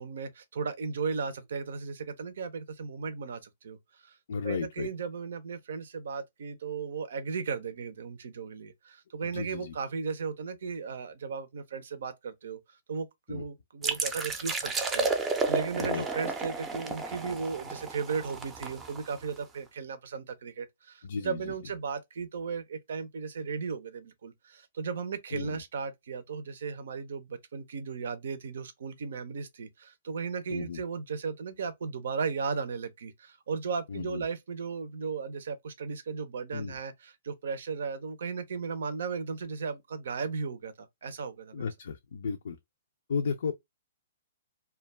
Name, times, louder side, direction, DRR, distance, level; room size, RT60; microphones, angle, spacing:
voice 1, 0.0-4.2 4.4-41.6, right 5 dB, 70° right, 0.5 m, -36 dB
voice 2, 4.3-4.9 9.3-9.7 13.3-13.4 15.8-16.0 21.0-21.5 25.3-25.6 30.5-30.8 33.9-34.2 36.5-36.8 41.5-42.6 43.1-43.5, left 5 dB, 70° left, 0.3 m, -34 dB
sound 1, 13.8-19.4, right 4 dB, 15° right, 0.5 m, -32 dB
2.2 x 2.2 x 3.1 m
hypercardioid pair, 130°, 0 cm